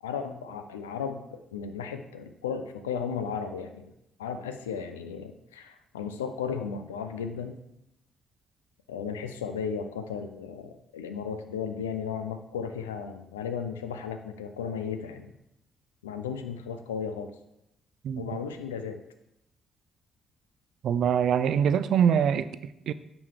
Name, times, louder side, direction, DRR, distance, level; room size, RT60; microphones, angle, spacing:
voice 1, 0.0-3.9 4.2-7.6 8.9-15.3 16.0-17.3 18.2-19.0, left 6 dB, 85° left, 8 dB, 0.4 m, -35 dB
voice 2, 20.8-22.9, right 8 dB, 60° right, 14 dB, 0.3 m, -24 dB
8.8 x 3.2 x 4.7 m, 0.84 s
hypercardioid pair, 45°, 0 cm